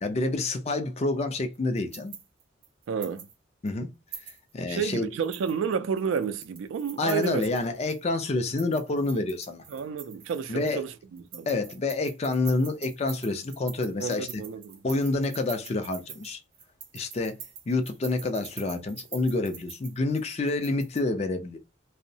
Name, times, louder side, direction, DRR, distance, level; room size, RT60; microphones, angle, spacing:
voice 1, 0.0-2.2 3.6-3.9 4.5-5.1 7.0-9.6 10.5-10.8 11.5-14.4 14.8-16.4 16.9-17.4 17.7-21.6, left 2 dB, 35° left, 0.4 m, -28 dB
sound 1, 1.5-3.3 3.7-3.8 4.1-4.8 5.2-8.0 8.4-10.9 11.2-21.0, right 7 dB, 50° right, 0.6 m, -45 dB
voice 2, 2.9-3.3 4.7-7.5 9.7-11.5 14.0-14.8, right 6 dB, 90° right, 0.3 m, -30 dB
2.6 x 2.0 x 2.6 m
head